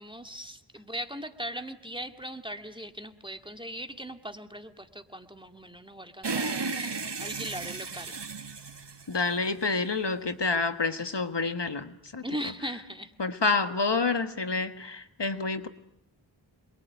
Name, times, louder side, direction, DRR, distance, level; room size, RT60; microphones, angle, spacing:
voice 1, 0.0-8.1 12.2-13.2, equal, 10° right, 6 dB, 2.1 m, -39 dB
sound 1, 6.2-9.7, right 4 dB, 65° right, 1.5 m, -34 dB
voice 2, 9.1-12.2 13.2-15.7, left 3 dB, 65° left, 9 dB, 1.6 m, -28 dB
27.0 x 22.5 x 9.2 m, 0.75 s
wide cardioid pair, 40°, 45 cm